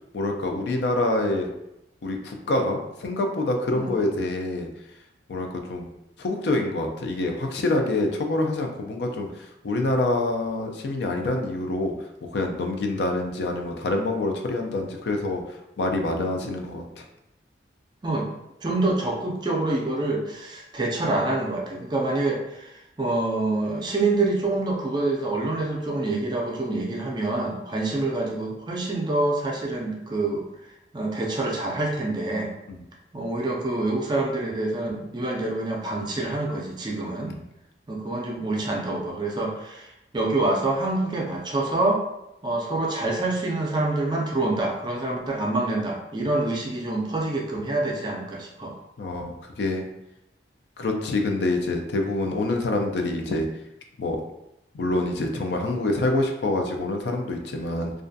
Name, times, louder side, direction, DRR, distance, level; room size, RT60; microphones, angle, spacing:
voice 1, 0.1-1.5 2.0-4.7 5.3-5.9 6.2-11.9 12.2-15.4 15.8-17.0 32.7-32.8 37.2-37.3 49.0-49.8 50.8-53.5 54.0-54.2 54.7-57.9, left 2 dB, 70° left, 3 dB, 0.4 m, -26 dB
voice 2, 18.6-30.4 30.9-32.5 33.1-37.4 37.9-42.0 42.4-48.8 49.2-49.3, right 2 dB, 25° right, -1 dB, 0.3 m, -26 dB
2.3 x 2.2 x 2.5 m, 0.86 s
head